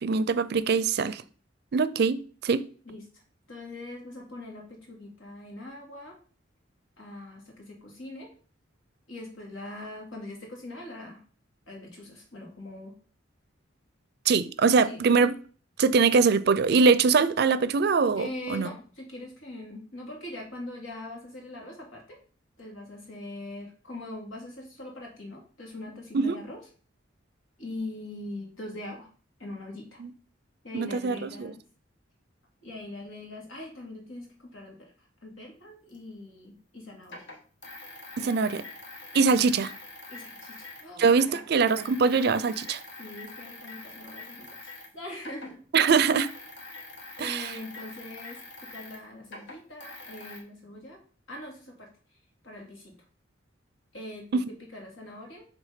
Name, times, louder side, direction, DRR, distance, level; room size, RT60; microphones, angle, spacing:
voice 1, 0.0-1.2 1.7-2.6 14.3-15.3 15.8-18.7 26.1-26.4 30.0-30.1 30.7-31.5 38.2-38.6 39.1-39.7 41.0-42.8 45.7-46.3 47.2-47.5 54.3-54.4, right 5 dB, 55° right, 0.4 m, -23 dB
voice 2, 2.8-3.2 3.5-6.2 7.0-8.3 9.1-11.2 11.7-13.0 14.8-15.0 18.1-22.2 22.6-26.6 27.6-29.1 29.4-30.0 30.6-31.6 32.6-37.3 38.2-38.6 39.1-39.4 40.1-41.4 43.0-44.6 44.9-45.6 47.2-51.0 51.3-51.9 52.4-53.0 53.9-55.5, left 1 dB, 85° left, 2.4 m, -42 dB
sound 1, 35.9-36.0 37.0-40.9 41.1-44.9 45.2-50.4, left 2 dB, 65° left, 1.7 m, -44 dB
6.4 x 3.5 x 5.0 m
head